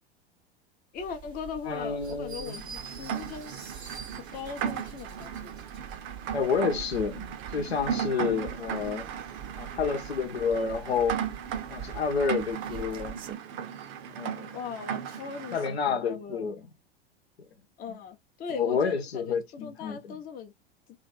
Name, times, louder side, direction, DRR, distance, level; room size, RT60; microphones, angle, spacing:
voice 1, 0.9-3.5 4.1-5.7 7.9-8.2 14.5-16.7 17.8-20.5, left 6 dB, 25° left, 0.8 m, -39 dB
sound 1, 1.0-13.4, right 9 dB, 15° right, 0.3 m, -46 dB
voice 2, 1.7-2.6 6.3-9.1 9.6-11.2 11.7-13.2 14.1-14.6 15.5-16.6 17.9-18.0 18.5-20.2, left 6 dB, 70° left, 0.9 m, -29 dB
sound 2, 2.0-6.0, right 4 dB, 85° right, 0.9 m, -46 dB
Rain, 2.4-15.8, right 8 dB, 35° right, 0.7 m, -36 dB
3.3 x 2.5 x 4.1 m
figure-of-eight pair, 85°, 32 cm